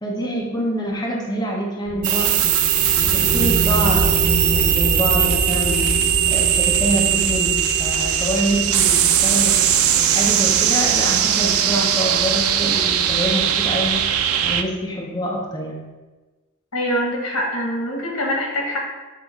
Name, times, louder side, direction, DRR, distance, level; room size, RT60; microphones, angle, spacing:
voice 1, 0.0-2.6 3.0-4.1 4.5-9.6 9.9-15.8, equal, 20° left, -3 dB, 0.9 m, -26 dB
sound 1, 1.9-11.9, right 1 dB, 55° left, 1.5 m, -26 dB
sound 2, 2.0-14.6, right 10 dB, 80° right, 0.5 m, -19 dB
voice 2, 16.7-18.8, equal, 85° left, 0 dB, 1.5 m, -24 dB
7.5 x 2.8 x 5.1 m, 1.2 s
head